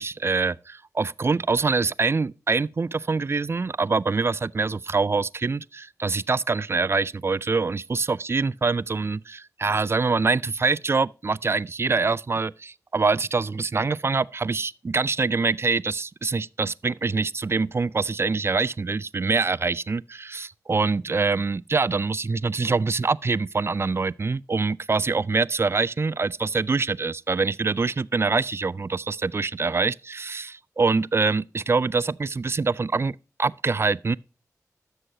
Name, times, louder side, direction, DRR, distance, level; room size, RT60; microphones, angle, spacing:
voice 1, 0.0-34.2, right 4 dB, 40° right, 0.3 m, -25 dB
12.5 x 6.4 x 2.8 m
cardioid pair, 45°, 6 cm